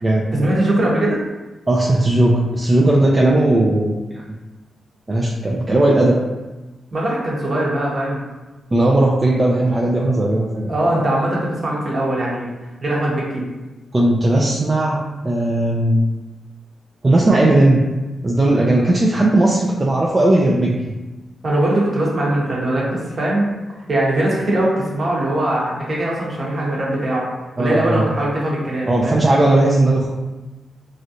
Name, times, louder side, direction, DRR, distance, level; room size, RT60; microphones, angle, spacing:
voice 1, 0.3-1.2 6.9-8.2 10.7-12.5 12.8-13.4 21.4-23.5 23.9-27.3 27.6-29.2, right 1 dB, 55° right, -4 dB, 1.0 m, -21 dB
voice 2, 1.7-4.4 5.1-6.2 8.7-10.9 13.9-16.0 17.0-17.8 18.2-20.9 27.6-28.1 28.9-30.1, right 1 dB, 35° right, -3 dB, 0.5 m, -17 dB
3.0 x 2.5 x 2.7 m, 1.2 s
supercardioid pair, 45°, 0 cm